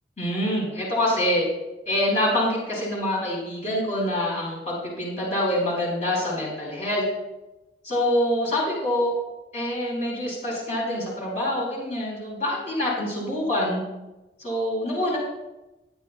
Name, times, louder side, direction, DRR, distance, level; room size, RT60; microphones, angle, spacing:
voice 1, 0.2-1.5 1.9-7.0 7.8-9.1 9.5-13.8 14.4-15.2, left 1 dB, 40° left, -4 dB, 5.3 m, -25 dB
22.0 x 10.5 x 2.4 m, 0.99 s
head